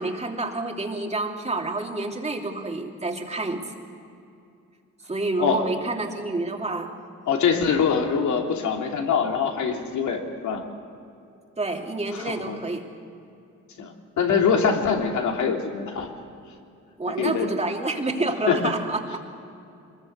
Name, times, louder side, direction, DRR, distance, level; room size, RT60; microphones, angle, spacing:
voice 1, 0.0-3.7 5.1-7.0 11.6-12.8 17.0-19.2, right 2 dB, 20° right, 2 dB, 3.0 m, -28 dB
voice 2, 7.3-10.6 12.1-12.6 13.8-16.1 17.2-17.5 18.5-18.6, left 6 dB, 70° left, 2 dB, 3.1 m, -24 dB
23.5 x 20.5 x 8.1 m, 2.6 s
cardioid pair, 90°, 30 cm